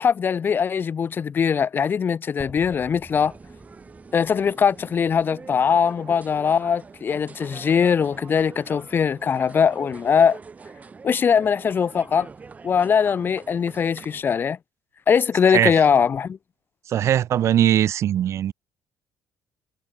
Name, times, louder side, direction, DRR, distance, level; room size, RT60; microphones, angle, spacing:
voice 1, 0.0-3.3 4.1-10.4 11.0-12.3 12.6-14.6 15.1-16.4, left 7 dB, 35° left, 2.7 m, -21 dB
sound 1, 2.4-6.4, equal, ahead, 6.4 m, -48 dB
sound 2, 3.1-14.2, right 4 dB, 25° right, 6.8 m, -44 dB
voice 2, 16.9-18.5, right 10 dB, 50° right, 0.7 m, -20 dB
cardioid pair, 135°, 6 cm